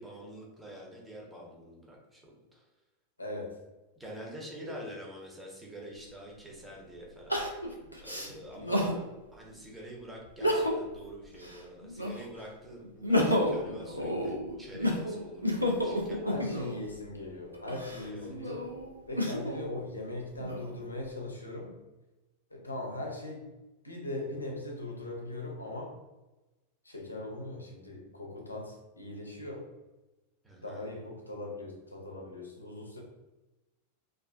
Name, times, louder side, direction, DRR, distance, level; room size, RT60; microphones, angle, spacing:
voice 1, 0.0-2.7 4.0-7.5 8.0-9.0 9.3-16.8 18.0-18.4 30.4-30.9, right 1 dB, 10° right, -3 dB, 0.7 m, -47 dB
voice 2, 3.2-3.6 4.6-4.8 16.2-18.7 19.1-21.8 22.5-23.5 23.8-26.0 26.8-29.7 30.6-33.0, left 2 dB, 80° left, 0 dB, 0.4 m, -40 dB
Crying sobbing, 5.9-6.0 7.3-9.0 9.5-9.6 10.3-11.0 11.3-12.4 12.8-16.8 17.5-19.6 20.2-21.0, left 1 dB, 90° right, 0.4 m, -31 dB
2.4 x 2.4 x 2.3 m, 1.1 s
figure-of-eight pair, 90°, 0 cm